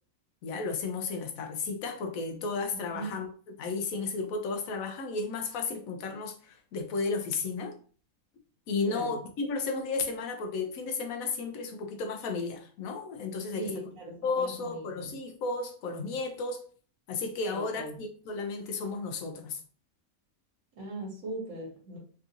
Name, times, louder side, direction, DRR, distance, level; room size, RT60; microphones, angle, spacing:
voice 1, 0.4-3.3 3.6-7.7 8.7-13.8 14.2-16.6 17.1-19.6, left 4 dB, 80° left, 1.1 m, -33 dB
voice 2, 2.7-3.1 8.8-9.1 13.5-15.1 17.5-18.0 20.7-22.0, right 2 dB, 70° right, 1.5 m, -39 dB
3.5 x 2.4 x 2.8 m
omnidirectional pair, 1.5 m